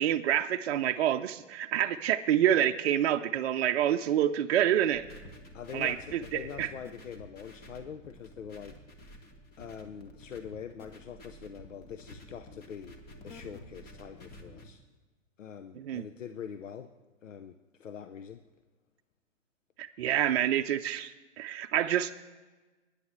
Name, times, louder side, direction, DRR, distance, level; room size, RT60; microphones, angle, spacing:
voice 1, 0.0-5.0 5.7-6.7 15.8-16.0 19.8-22.1, right 11 dB, 55° right, 6 dB, 0.6 m, -27 dB
sound 1, 4.9-14.7, left 1 dB, 25° left, 1.3 m, -50 dB
voice 2, 5.5-8.8 9.6-13.0 13.2-14.8 15.4-16.9 17.2-18.4, left 7 dB, 85° left, 10 dB, 0.7 m, -44 dB
19.5 x 9.9 x 3.2 m, 1.2 s
hypercardioid pair, 125°, 37 cm